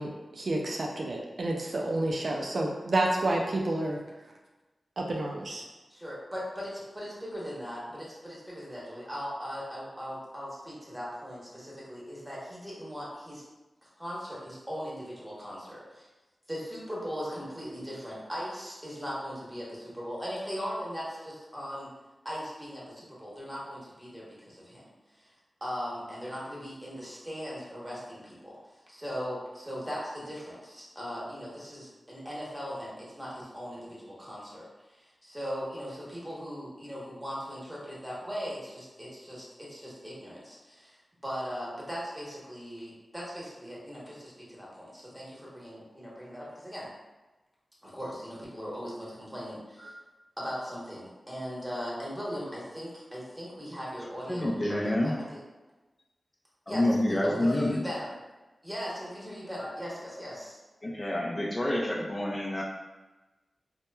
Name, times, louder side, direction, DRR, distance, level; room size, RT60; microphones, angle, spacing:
voice 1, 0.0-4.0 5.0-5.6, right 2 dB, 65° right, 0 dB, 0.3 m, -29 dB
voice 2, 5.9-13.4 14.0-16.1 16.5-21.9 22.2-24.9 25.2-25.3 25.6-28.6 28.9-46.9 47.8-49.9 50.4-54.9 55.3-55.4 56.7-58.1 58.6-60.6, equal, 10° right, -6 dB, 1.1 m, -39 dB
voice 3, 54.3-55.1 56.7-57.8 59.6-59.7 60.8-62.6, left 1 dB, 30° left, -3 dB, 0.4 m, -28 dB
2.9 x 2.1 x 2.2 m, 1.1 s
cardioid pair, 45°, 0 cm